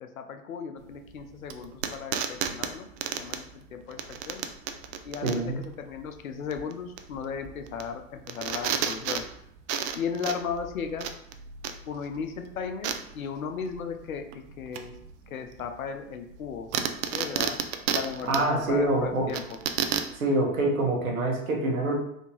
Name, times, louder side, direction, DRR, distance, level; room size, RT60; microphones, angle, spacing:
voice 1, 0.0-2.9 3.2-4.4 5.0-9.2 9.9-11.1 11.8-15.0 15.3-16.7 17.1-17.6 17.9-19.6, left 6 dB, 90° left, 6 dB, 0.5 m, -36 dB
sound 1, 0.8-20.2, right 8 dB, 60° right, 0.5 m, -33 dB
voice 2, 5.2-5.6 18.3-19.3 20.1-21.9, right 2 dB, 85° right, -1 dB, 1.0 m, -25 dB
3.5 x 2.7 x 2.8 m, 0.78 s
figure-of-eight pair, 75°, 40 cm